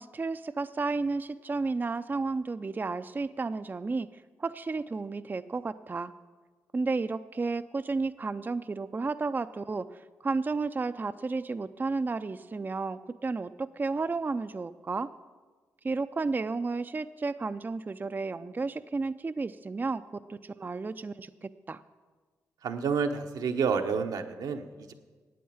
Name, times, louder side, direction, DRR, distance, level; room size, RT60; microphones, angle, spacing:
voice 1, 0.0-4.1 4.4-6.1 6.7-15.1 15.8-20.0 20.3-21.8, right 3 dB, 30° right, 11 dB, 0.4 m, -32 dB
voice 2, 22.6-24.9, right 6 dB, 80° right, 5 dB, 1.0 m, -29 dB
9.3 x 8.5 x 8.7 m, 1.4 s
cardioid pair, 60°, 7 cm